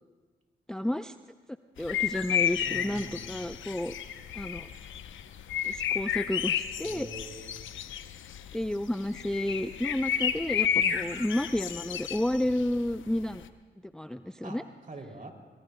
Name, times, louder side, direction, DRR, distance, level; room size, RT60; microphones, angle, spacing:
voice 1, 0.7-1.1 1.8-3.9 4.3-4.7 5.6-7.1 8.5-13.4 13.9-14.6, left 1 dB, 5° left, 11 dB, 0.5 m, -31 dB
sound 1, 1.8-13.5, left 9 dB, 70° left, 0.7 m, -32 dB
voice 2, 2.6-3.5 6.8-7.7 10.7-11.1 12.4-12.5 14.4-15.3, right 2 dB, 40° right, 3 dB, 2.9 m, -44 dB
24.5 x 22.5 x 2.2 m, 1.4 s
hypercardioid pair, 40°, 21 cm